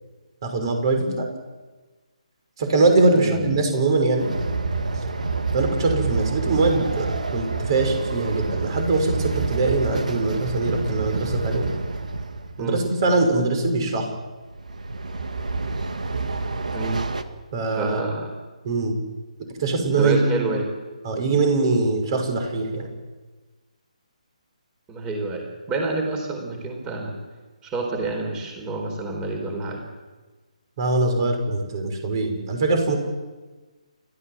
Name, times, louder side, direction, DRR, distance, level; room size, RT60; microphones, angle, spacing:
voice 1, 0.4-1.3 2.6-4.3 5.5-11.7 12.6-14.1 17.5-18.0 18.6-18.9 19.6-20.5 21.0-22.9 30.8-33.0, right 3 dB, 40° right, 5 dB, 5.8 m, -22 dB
voice 2, 3.1-3.5 12.6-12.8 16.7-17.0 17.7-18.3 20.0-20.7 24.9-27.2 27.6-29.8, right 3 dB, 15° right, 3 dB, 4.3 m, -28 dB
Train, 4.2-12.7 14.5-17.2, right 3 dB, 75° right, 1.9 m, -28 dB
29.5 x 14.5 x 7.5 m, 1.3 s
figure-of-eight pair, 150°, 4 cm